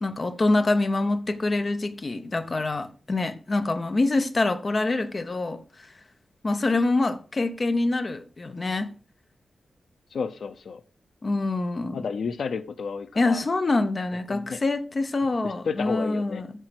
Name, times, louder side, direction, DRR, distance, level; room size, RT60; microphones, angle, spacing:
voice 1, 0.0-5.6 6.4-9.0 11.2-12.0 13.2-16.5, left 2 dB, 30° left, 0.9 m, -25 dB
voice 2, 10.1-10.8 11.9-13.4 14.3-14.6 15.4-16.4, left 5 dB, 70° left, 0.7 m, -31 dB
9.2 x 6.6 x 6.0 m
wide cardioid pair, 150°, 0 cm